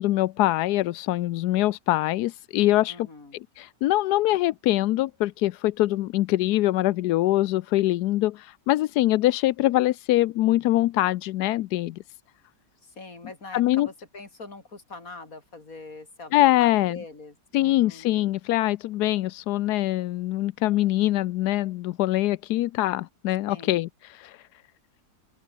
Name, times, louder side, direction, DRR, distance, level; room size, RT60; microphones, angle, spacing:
voice 1, 0.0-3.1 3.6-12.0 13.5-13.9 16.3-17.0 17.5-24.4, left 16 dB, 75° left, 1.1 m, -23 dB
voice 2, 2.9-3.4 12.8-18.1 23.5-23.8, left 3 dB, 50° left, 4.5 m, -43 dB
open air
omnidirectional pair, 1.9 m